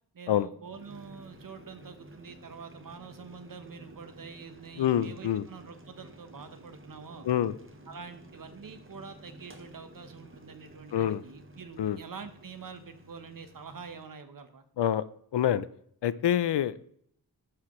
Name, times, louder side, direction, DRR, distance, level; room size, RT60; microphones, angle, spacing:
voice 1, 0.1-7.3 7.9-14.6, right 5 dB, 55° right, 9 dB, 1.0 m, -46 dB
Boiling, 0.6-14.1, right 1 dB, 30° right, 1.0 m, -52 dB
voice 2, 4.8-5.5 7.2-7.5 10.9-11.2 11.8-12.0 14.8-15.0 15.3-15.7 16.0-16.8, left 10 dB, 85° left, 16 dB, 0.5 m, -26 dB
13.0 x 4.9 x 3.1 m, 0.65 s
wide cardioid pair, 110°, 41 cm